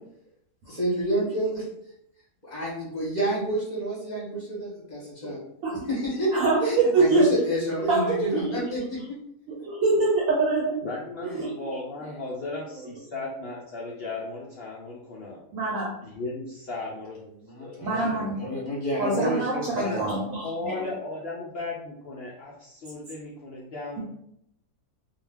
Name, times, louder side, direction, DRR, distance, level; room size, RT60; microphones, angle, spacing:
voice 1, 0.7-1.6 2.4-5.4 5.9-6.3 6.6-9.2 17.4-18.1 18.4-20.1, right 1 dB, 40° left, -6 dB, 0.7 m, -29 dB
voice 2, 6.3-7.3 7.9-8.6 9.5-10.8 11.2-11.6 12.2-12.3 12.8-12.9 15.5-16.0 17.8-18.5 19.0-20.8, right 3 dB, 70° right, -3 dB, 0.9 m, -24 dB
voice 3, 10.8-15.4 16.0-17.2 17.6-18.3 19.5-20.1 20.4-24.0, left 2 dB, 90° left, -5 dB, 0.5 m, -36 dB
2.3 x 2.2 x 3.3 m, 0.75 s
omnidirectional pair, 1.6 m